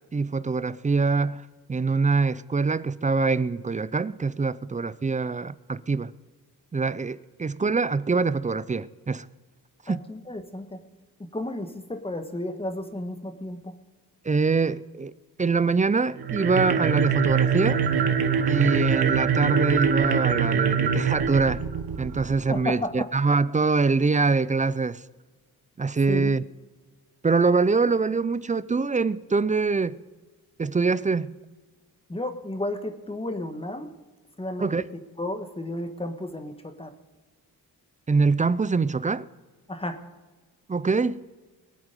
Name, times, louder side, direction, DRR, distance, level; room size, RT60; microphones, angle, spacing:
voice 1, 0.1-1.4 1.7-6.1 6.7-9.3 9.9-10.0 14.2-15.1 15.4-17.8 18.4-21.6 22.0-25.0 25.8-26.4 27.2-30.0 30.6-31.4 34.6-34.8 38.1-39.3 40.7-41.2, right 4 dB, 20° right, 0.4 m, -24 dB
voice 2, 9.9-10.8 11.3-13.7 22.5-23.1 26.1-26.3 32.1-33.9 34.4-34.7 35.2-36.9 39.7-40.0, left 1 dB, 15° left, 1.4 m, -33 dB
sound 1, 16.2-22.4, right 6 dB, 80° right, 1.3 m, -24 dB
21.0 x 8.9 x 5.3 m
cardioid pair, 95°, 37 cm